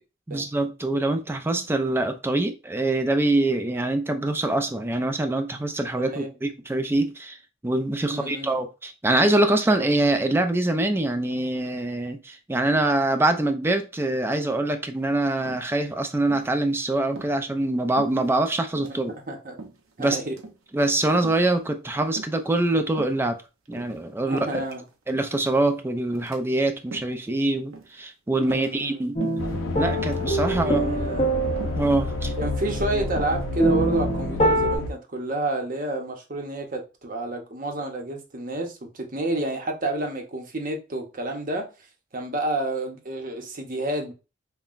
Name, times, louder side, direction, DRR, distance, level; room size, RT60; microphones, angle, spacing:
voice 1, 0.3-7.4 7.6-19.1 20.0-20.2 20.7-23.4 23.7-24.6 25.1-29.2 29.7-30.8 31.8-32.3, right 2 dB, 10° right, 0.3 m, -24 dB
voice 2, 8.0-8.6 18.8-19.6 20.0-20.4 24.3-24.8 28.3-29.0 30.5-31.3 32.4-41.7 42.1-44.1, right 2 dB, 40° right, 0.8 m, -30 dB
sound 1, 15.5-15.9 16.3-16.6 17.1-17.4 18.0-18.5 18.8-19.0 19.6-19.9 20.3-20.6 21.2-21.5 22.2-22.5 22.9-23.2 23.7-24.9 25.3-25.6 26.1-26.4 26.8-27.2 27.7-28.0 28.4-28.9 29.2-29.5 29.9-30.2 30.8-31.1 31.6-31.8 32.4-32.7 33.1-34.2, right 3 dB, 80° right, 0.7 m, -40 dB
sound 2, 29.2-34.8, right 1 dB, 30° left, 0.9 m, -26 dB
sound 3, 29.4-34.9, left 3 dB, 75° left, 0.6 m, -30 dB
5.5 x 2.2 x 2.4 m
head